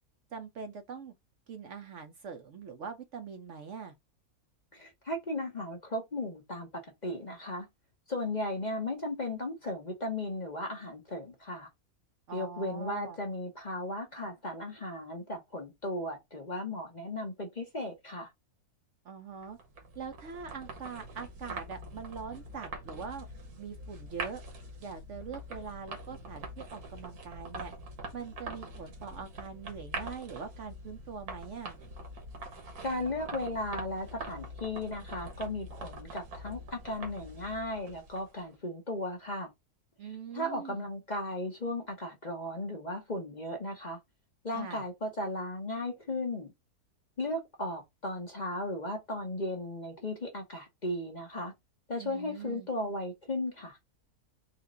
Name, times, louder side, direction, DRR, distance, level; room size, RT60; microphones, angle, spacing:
voice 1, 0.3-1.1 1.5-3.9 12.3-13.2 19.0-19.6 20.0-23.3 23.6-24.4 24.8-27.7 28.1-31.8 40.0-40.9 44.5-44.8 52.0-52.7, right 6 dB, 60° right, 0.9 m, -43 dB
voice 2, 4.7-7.7 8.1-11.7 12.3-18.3 32.8-39.5 40.3-44.0 44.4-46.5 47.2-51.5 51.9-53.8, left 1 dB, 30° left, 1.0 m, -36 dB
sound 1, 19.4-38.4, right 2 dB, 75° right, 1.6 m, -44 dB
4.2 x 2.5 x 3.8 m
omnidirectional pair, 1.6 m